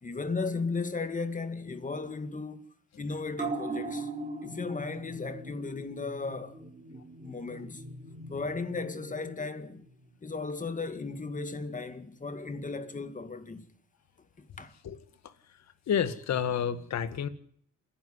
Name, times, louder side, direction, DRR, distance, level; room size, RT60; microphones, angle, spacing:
voice 1, 0.0-2.7 3.0-4.1 4.4-6.6 7.2-7.8 8.3-9.9 10.2-13.7 14.4-14.8, left 4 dB, 25° left, 2.1 m, -35 dB
sound 1, 3.3-10.3 10.6-10.7, right 2 dB, 25° right, 4.3 m, -40 dB
voice 2, 15.2-17.3, left 8 dB, 65° left, 1.9 m, -31 dB
27.5 x 10.5 x 10.0 m
cardioid pair, 90°, 30 cm